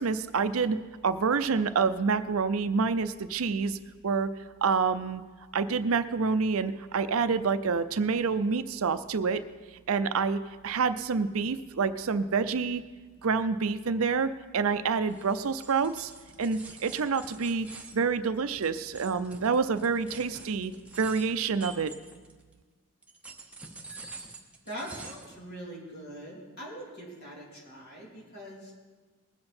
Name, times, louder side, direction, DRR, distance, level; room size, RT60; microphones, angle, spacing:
voice 1, 0.0-3.8 4.0-4.3 4.6-5.2 5.5-9.4 9.9-12.8 13.2-16.1 16.4-17.7 17.9-21.9, right 5 dB, 75° right, 12 dB, 0.5 m, -27 dB
sound 1, 15.1-22.5 23.0-25.4, right 3 dB, 5° right, 0.9 m, -47 dB
voice 2, 24.6-28.7, equal, 45° left, -4 dB, 3.4 m, -42 dB
20.5 x 7.7 x 4.3 m, 1.4 s
head